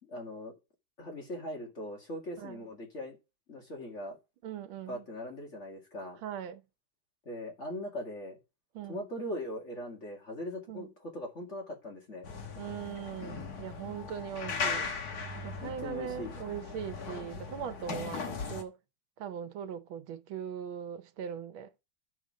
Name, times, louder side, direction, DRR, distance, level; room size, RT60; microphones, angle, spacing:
voice 1, 0.0-0.5 1.0-3.2 3.5-4.2 4.9-6.2 7.3-8.4 8.9-12.3 15.6-16.3, left 1 dB, 35° left, 2.4 m, -40 dB
voice 2, 4.4-5.0 6.2-6.6 8.7-9.0 10.7-10.9 12.5-14.9 15.4-18.8 19.2-21.7, right 8 dB, 90° right, 1.6 m, -40 dB
sound 1, 12.2-18.6, left 5 dB, 55° left, 1.8 m, -38 dB
9.8 x 6.5 x 3.7 m
omnidirectional pair, 2.1 m